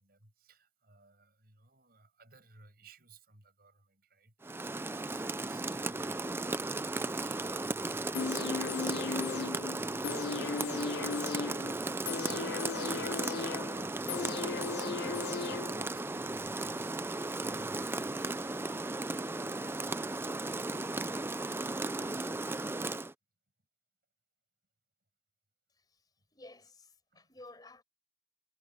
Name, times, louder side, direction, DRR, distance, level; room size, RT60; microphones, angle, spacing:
voice 1, 0.0-18.4 27.1-27.3, right 2 dB, 55° right, 6.5 m, -60 dB
Rain, 4.4-23.1, right 2 dB, 15° right, 0.4 m, -36 dB
sound 1, 8.1-16.1 16.5-16.6, left 5 dB, 60° left, 0.4 m, -37 dB
voice 2, 26.3-27.8, left 2 dB, 20° left, 5.2 m, -53 dB
head